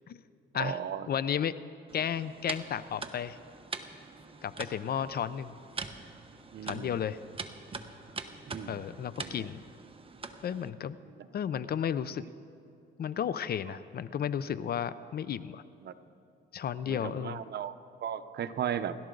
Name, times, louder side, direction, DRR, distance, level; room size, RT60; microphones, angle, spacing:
voice 1, 0.5-1.1 6.5-7.0 8.5-8.9 9.2-9.5 11.2-11.3 15.8-15.9 16.9-19.0, right 9 dB, 55° right, 11 dB, 0.8 m, -36 dB
voice 2, 1.1-1.6 1.9-3.4 4.4-5.5 6.6-7.2 8.7-9.6 10.4-11.0 11.3-12.2 13.0-15.6 16.5-17.4, left 8 dB, 50° left, 15 dB, 0.6 m, -33 dB
sound 1, 1.9-10.7, right 4 dB, 30° right, 1.0 m, -43 dB
29.5 x 12.5 x 3.9 m, 2.6 s
cardioid pair, 90°, 20 cm